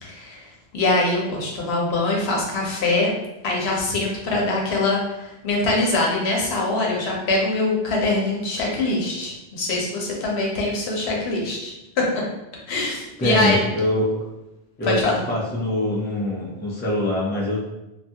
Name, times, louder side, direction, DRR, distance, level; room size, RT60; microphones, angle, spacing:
voice 1, 0.0-3.1 3.4-12.2 12.7-13.6 14.8-15.2, left 2 dB, 80° left, -2 dB, 0.9 m, -23 dB
voice 2, 13.2-14.2 14.8-17.6, left 1 dB, 15° left, -5 dB, 0.4 m, -24 dB
2.7 x 2.3 x 2.7 m, 0.95 s
omnidirectional pair, 1.1 m